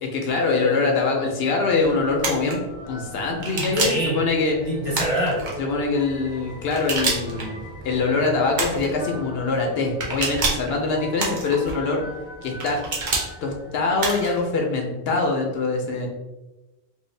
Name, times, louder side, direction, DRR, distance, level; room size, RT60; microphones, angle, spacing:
voice 1, 0.0-2.6 2.9-4.5 5.6-7.6 7.8-12.0 12.4-12.8 13.4-16.1, left 3 dB, 70° left, 1 dB, 0.8 m, -23 dB
sound 1, 1.8-14.4, right 1 dB, 5° right, 0.6 m, -42 dB
sound 2, 2.2-2.5 3.4-4.1 4.9-5.5 6.7-7.4 8.5-8.9 10.0-10.7 11.2-11.7 12.6-13.3 14.0-14.4, right 3 dB, 50° right, 0.8 m, -26 dB
voice 2, 3.4-4.2 4.6-5.6, equal, 35° right, -6 dB, 1.2 m, -26 dB
3.1 x 2.7 x 3.2 m, 1.1 s
omnidirectional pair, 1.1 m